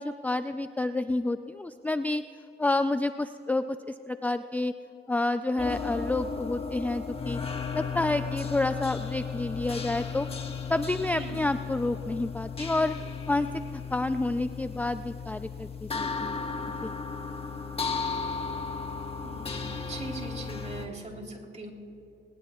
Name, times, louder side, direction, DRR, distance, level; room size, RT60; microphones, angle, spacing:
voice 1, 0.0-2.2 2.6-3.8 4.1-4.7 5.1-7.4 7.7-10.3 10.7-12.9 13.3-16.4 16.8-16.9, left 2 dB, 10° left, 10 dB, 0.4 m, -29 dB
sound 1, 5.6-20.9, left 5 dB, 30° left, 1.4 m, -35 dB
voice 2, 19.2-21.7, right 2 dB, 35° right, 0 dB, 3.4 m, -41 dB
24.5 x 20.5 x 2.3 m, 2.8 s
cardioid pair, 90°, 20 cm